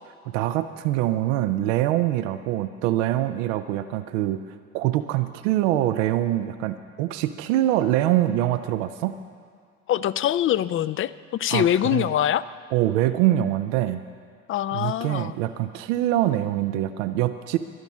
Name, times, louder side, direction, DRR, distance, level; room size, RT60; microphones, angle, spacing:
voice 1, 0.3-4.4 4.7-9.1 11.5-12.1 12.7-14.0 14.7-17.6, right 13 dB, 70° right, 10 dB, 0.6 m, -24 dB
voice 2, 9.9-12.5 14.5-15.3, left 11 dB, 35° left, 16 dB, 0.4 m, -24 dB
11.5 x 11.0 x 7.3 m, 2.1 s
hypercardioid pair, 60°, 39 cm